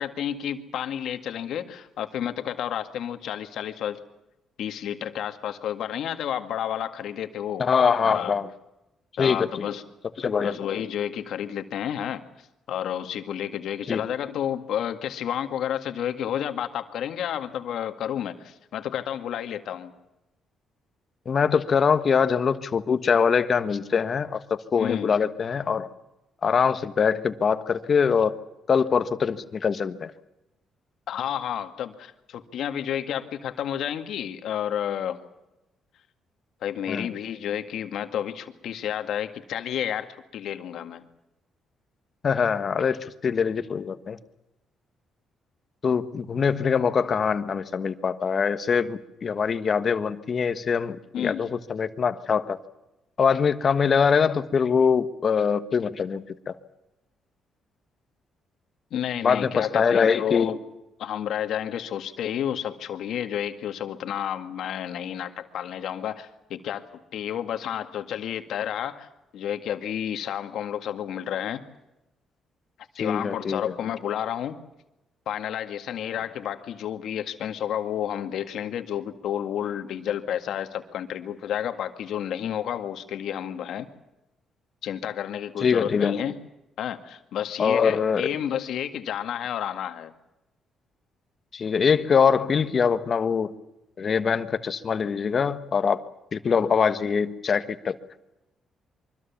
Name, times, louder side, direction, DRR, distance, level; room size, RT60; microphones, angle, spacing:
voice 1, 0.0-4.0 4.6-7.6 8.0-8.3 9.2-9.8 10.4-12.2 12.7-19.9 24.8-25.1 31.1-35.2 36.6-41.0 51.1-51.4 58.9-60.6 61.0-66.8 67.1-69.1 69.3-71.6 73.0-74.6 75.3-83.9 84.8-86.4 86.8-90.1, left 10 dB, 75° left, 8 dB, 1.9 m, -31 dB
voice 2, 7.6-8.5 9.2-9.7 10.2-10.5 13.9-14.0 21.2-25.9 26.4-28.3 28.7-30.1 36.9-37.1 42.2-44.2 45.8-52.6 53.2-56.5 59.2-60.5 73.0-73.7 85.6-86.2 87.6-88.3 91.5-93.5 94.0-96.0 96.3-97.9, left 6 dB, 45° left, 11 dB, 1.3 m, -23 dB
24.0 x 24.0 x 7.2 m, 0.93 s
cardioid pair, 90°, 0 cm